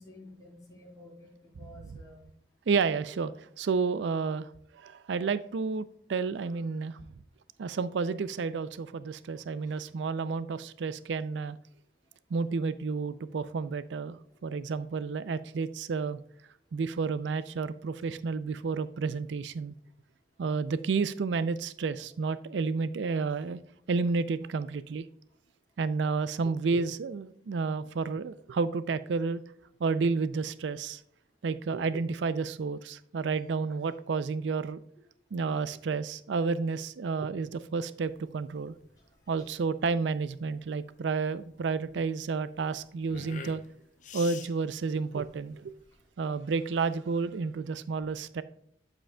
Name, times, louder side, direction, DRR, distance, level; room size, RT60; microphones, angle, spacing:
voice 1, 0.0-2.2 9.7-9.8 39.4-39.5, left 1 dB, 20° left, -3 dB, 2.9 m, -52 dB
voice 2, 2.7-7.0 7.6-11.6 12.3-16.2 16.7-19.7 20.4-23.6 23.9-25.1 25.8-29.4 29.8-31.0 31.4-34.8 35.3-38.8 39.3-43.6 44.1-45.7 46.2-48.4, right 4 dB, 80° right, 15 dB, 0.4 m, -31 dB
sound 1, 38.0-46.1, left 6 dB, 45° left, 0.7 m, -49 dB
8.8 x 7.4 x 2.2 m, 0.70 s
head